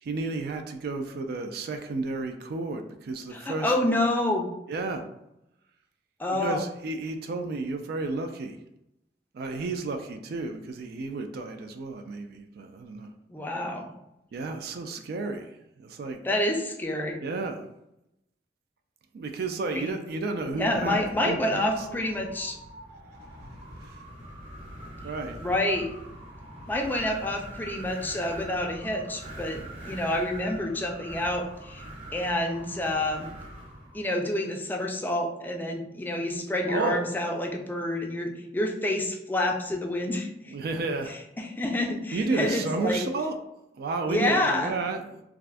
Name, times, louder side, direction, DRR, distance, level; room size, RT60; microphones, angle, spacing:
voice 1, 0.0-3.7 4.7-5.1 6.3-8.6 9.3-13.1 14.3-16.2 17.2-17.7 19.1-21.0 21.2-22.1 23.8-24.0 25.0-25.4 36.7-37.2 40.5-41.1 42.1-43.4 43.7-45.2, right 3 dB, 60° right, 6 dB, 0.3 m, -32 dB
voice 2, 3.3-4.5 6.2-6.6 13.3-13.9 16.2-17.2 19.8-19.9 20.6-22.6 25.4-25.9 26.7-31.8 32.1-33.3 33.9-40.5 41.1-43.0 44.1-44.7, left 1 dB, 10° left, 2 dB, 0.4 m, -28 dB
Wind, 20.4-34.0, right 1 dB, 35° right, 1.1 m, -43 dB
2.5 x 2.3 x 3.3 m, 0.86 s
head